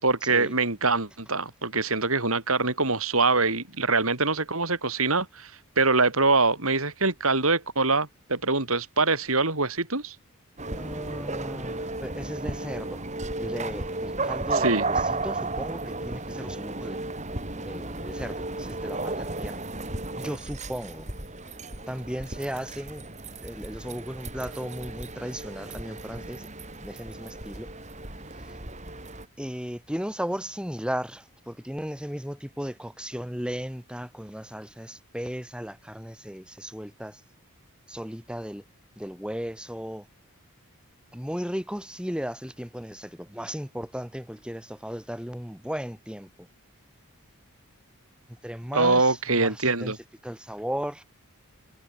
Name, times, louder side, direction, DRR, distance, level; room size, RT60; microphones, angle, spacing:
voice 1, 0.0-5.5 5.8-10.2 14.5-14.9 48.7-50.0, right 3 dB, 70° right, 5.7 m, -24 dB
sound 1, 10.6-29.3, right 2 dB, 30° right, 6.0 m, -34 dB
voice 2, 10.7-13.0 13.4-17.0 17.6-19.7 20.2-21.1 21.9-23.1 23.4-26.5 26.8-27.7 28.4-28.6 29.4-37.2 37.9-38.6 39.0-40.1 41.1-46.5 48.3-49.9 50.2-51.0, equal, 5° right, 5.5 m, -36 dB
head